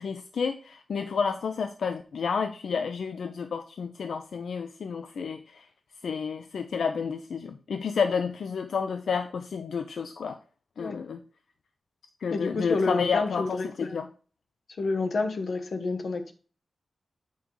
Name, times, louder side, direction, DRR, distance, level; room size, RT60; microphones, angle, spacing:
voice 1, 0.0-5.7 6.0-10.4 10.8-11.2 12.2-14.1, left 6 dB, 75° left, 8 dB, 0.4 m, -30 dB
voice 2, 12.3-14.0 14.8-16.3, left 3 dB, 55° left, 8 dB, 0.8 m, -29 dB
8.2 x 5.1 x 3.0 m, 0.39 s
wide cardioid pair, 160°, 0 cm